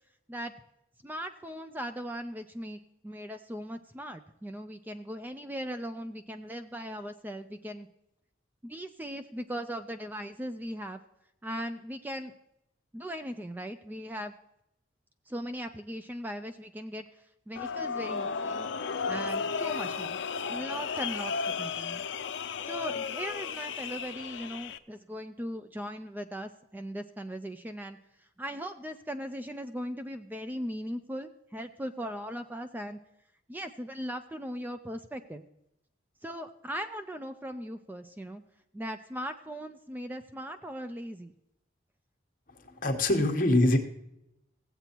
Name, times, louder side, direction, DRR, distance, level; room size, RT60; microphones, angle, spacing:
voice 1, 1.0-7.9 8.6-11.0 11.4-12.3 12.9-14.3 15.3-17.0 17.5-18.7 19.1-20.2 20.5-22.0 22.7-28.0 28.4-33.0 33.5-35.4 36.2-38.4 38.7-41.3, equal, 10° right, 8 dB, 0.3 m, -38 dB
sound 1, 17.6-24.8, left 5 dB, 85° left, 0.5 m, -34 dB
voice 2, 42.8-43.8, left 1 dB, 50° left, 4 dB, 1.1 m, -23 dB
16.5 x 8.0 x 2.9 m, 0.82 s
head